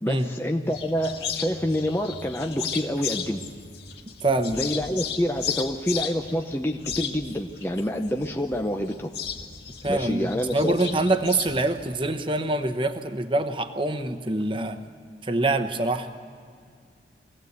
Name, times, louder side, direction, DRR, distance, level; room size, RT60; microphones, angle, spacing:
voice 1, 0.0-3.4 4.5-9.1 9.9-10.8, equal, 15° left, 3 dB, 0.7 m, -27 dB
sound 1, 0.6-11.8, left 7 dB, 65° left, 1.8 m, -35 dB
voice 2, 4.2-4.6 9.8-14.8 15.2-16.1, right 2 dB, 30° right, 8 dB, 1.1 m, -25 dB
23.5 x 17.0 x 8.2 m, 2.2 s
head